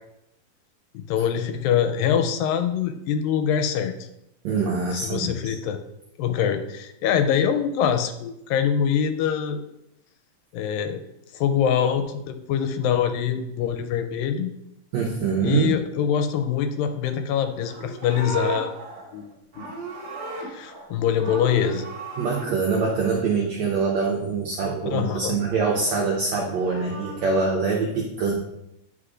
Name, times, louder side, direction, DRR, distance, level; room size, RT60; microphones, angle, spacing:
voice 1, 0.9-3.9 4.9-5.8 6.2-9.6 10.5-11.0 11.3-14.5 15.4-18.7 19.1-19.3 19.6-19.7 20.4-21.9 24.9-25.4, left 8 dB, 85° left, 7 dB, 2.3 m, -24 dB
voice 2, 4.4-5.5 14.9-15.8 22.2-28.3, right 4 dB, 85° right, -1 dB, 1.5 m, -24 dB
Livestock farm animals working animals, 17.5-20.9 21.2-22.5 26.3-27.5, right 1 dB, 55° right, 1.1 m, -35 dB
9.8 x 4.8 x 2.5 m, 0.83 s
omnidirectional pair, 4.1 m